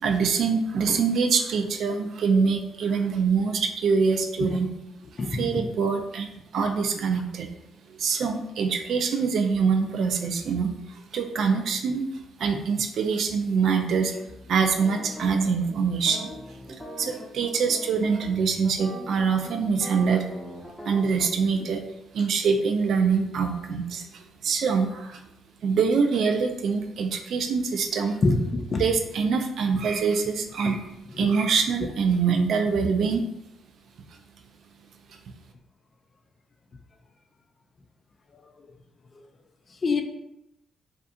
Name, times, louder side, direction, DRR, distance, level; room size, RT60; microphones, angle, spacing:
voice 1, 0.0-4.7 5.3-7.5 7.9-12.1 12.4-16.3 16.7-20.3 20.8-21.8 22.1-25.2 25.6-28.2 28.8-30.9 31.2-33.2, right 5 dB, 70° right, 5 dB, 0.3 m, -24 dB
voice 2, 5.2-5.5 28.2-28.9 29.7-29.8 30.6-30.8 31.1-31.3 39.8-40.0, left 3 dB, 45° left, 6 dB, 0.4 m, -25 dB
sound 1, 13.9-21.3, equal, 5° left, 0.7 m, -41 dB
2.7 x 2.4 x 2.4 m, 0.87 s
supercardioid pair, 60°, 0 cm